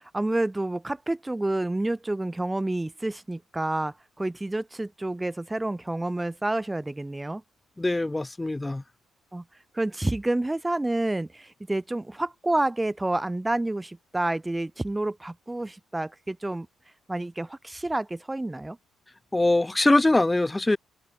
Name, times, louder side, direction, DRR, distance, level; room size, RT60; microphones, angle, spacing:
voice 1, 0.0-7.4 9.3-9.4 9.7-16.7 17.1-18.8, right 2 dB, 10° right, 6.7 m, -29 dB
voice 2, 7.8-8.8 19.3-20.8, left 2 dB, 15° left, 7.0 m, -22 dB
open air
cardioid pair, 90°, 0 cm